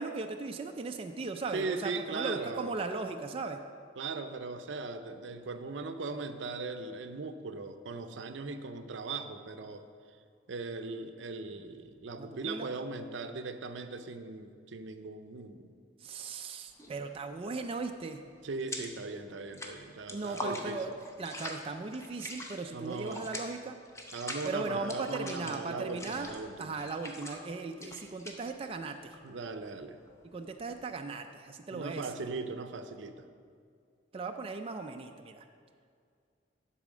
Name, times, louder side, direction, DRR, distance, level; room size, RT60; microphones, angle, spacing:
voice 1, 0.0-3.6 12.2-12.7 16.0-18.2 20.1-23.8 24.4-26.3 26.6-29.2 30.2-32.1 34.1-35.5, right 3 dB, 30° right, 5 dB, 0.3 m, -38 dB
voice 2, 1.5-2.7 4.0-9.9 10.5-15.7 18.4-20.8 22.7-23.3 24.1-26.8 29.2-30.0 31.7-33.3, right 3 dB, 75° right, 9 dB, 0.6 m, -39 dB
sound 1, 16.7-17.1 17.3-19.1 19.3-30.9, left 1 dB, 15° left, 0.7 m, -43 dB
11.0 x 4.2 x 6.1 m, 2.2 s
head